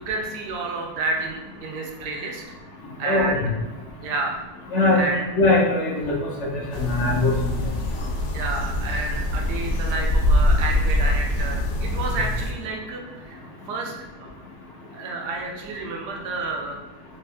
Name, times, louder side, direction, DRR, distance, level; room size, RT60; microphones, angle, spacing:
voice 1, 0.0-2.4 3.0-3.4 4.0-4.4 5.0-5.2 8.3-13.4 13.7-13.9 14.2-14.3 14.9-16.8, right 3 dB, 80° right, 1 dB, 1.2 m, -30 dB
voice 2, 3.0-3.5 4.7-5.0 5.4-7.5, left 2 dB, 55° left, -2 dB, 0.9 m, -21 dB
sound 1, 6.7-12.5, left 1 dB, 80° left, 1.2 m, -23 dB
3.4 x 3.1 x 3.4 m, 1.1 s
omnidirectional pair, 1.8 m